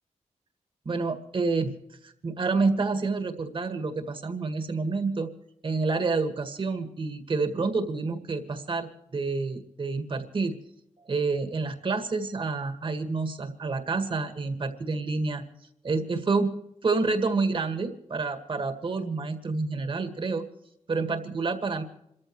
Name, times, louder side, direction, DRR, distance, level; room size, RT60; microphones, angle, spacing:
voice 1, 0.9-1.7 2.0-5.3 5.6-10.6 11.1-15.4 15.8-16.5 16.8-20.5 20.9-21.8, right 3 dB, 45° right, 7 dB, 1.9 m, -28 dB
27.5 x 14.0 x 3.2 m, 0.81 s
wide cardioid pair, 135°, 12 cm